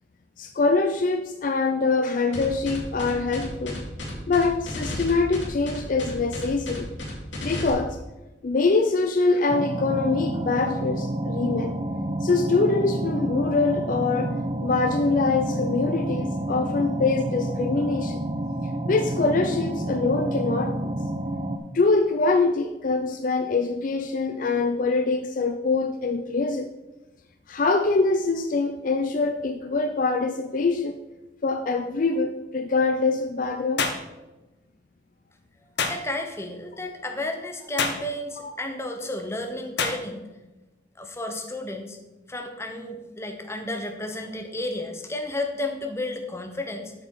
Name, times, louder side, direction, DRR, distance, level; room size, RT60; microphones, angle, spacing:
voice 1, 0.4-3.8 4.3-6.9 7.4-8.0 8.4-11.7 12.2-14.4 14.6-18.2 18.9-20.8 21.7-26.7 27.5-31.0 31.4-33.9 38.4-38.5, left 3 dB, 45° left, 7 dB, 0.4 m, -24 dB
sound 1, 2.3-7.7, left 1 dB, 85° left, 2.3 m, -33 dB
sound 2, 9.5-21.6, right 1 dB, 30° right, 0.6 m, -29 dB
sound 3, 33.8-34.1 35.8-36.0 37.8-38.1 39.8-40.0, left 4 dB, 65° left, 1.0 m, -26 dB
voice 2, 35.9-40.2 41.0-42.0 42.3-46.9, left 1 dB, 15° left, 4 dB, 0.9 m, -32 dB
7.9 x 6.1 x 4.7 m, 1.1 s
head